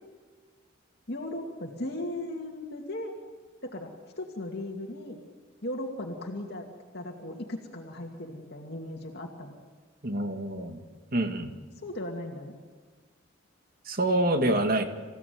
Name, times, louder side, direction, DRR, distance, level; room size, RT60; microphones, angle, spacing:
voice 1, 1.1-3.1 3.6-3.9 4.2-5.2 5.6-6.7 6.9-9.5 11.8-12.5, left 1 dB, 55° left, 1 dB, 2.4 m, -37 dB
voice 2, 10.0-10.8 11.1-11.5 13.9-14.8, right 1 dB, 45° right, 6 dB, 2.0 m, -26 dB
27.5 x 16.5 x 9.5 m, 1.5 s
head